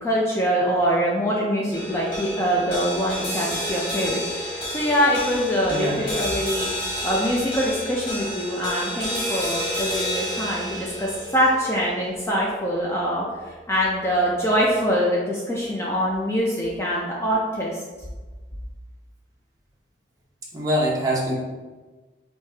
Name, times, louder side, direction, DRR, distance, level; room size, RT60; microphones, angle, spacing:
voice 1, 0.0-6.7 7.0-13.3 13.7-17.8, equal, 15° left, -4 dB, 0.4 m, -24 dB
sound 1, 1.7-14.2, equal, 30° left, 1.3 m, -31 dB
voice 2, 5.7-6.1 20.5-21.3, equal, 20° right, -4 dB, 0.9 m, -24 dB
4.8 x 2.7 x 3.3 m, 1.3 s
head